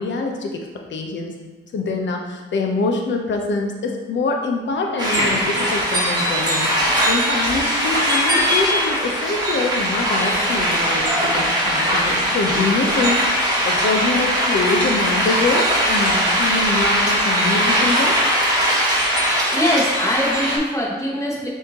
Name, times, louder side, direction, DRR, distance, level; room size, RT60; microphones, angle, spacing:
voice 1, 0.0-1.3 1.7-6.7 7.1-13.2 13.6-18.2, left 3 dB, 60° left, 2 dB, 0.8 m, -24 dB
sound 1, 5.0-20.6, equal, 20° right, 1.3 m, -20 dB
voice 2, 19.5-21.5, left 1 dB, 15° left, -4 dB, 1.4 m, -22 dB
6.4 x 2.8 x 2.9 m, 1.3 s
cardioid pair, 65°, 21 cm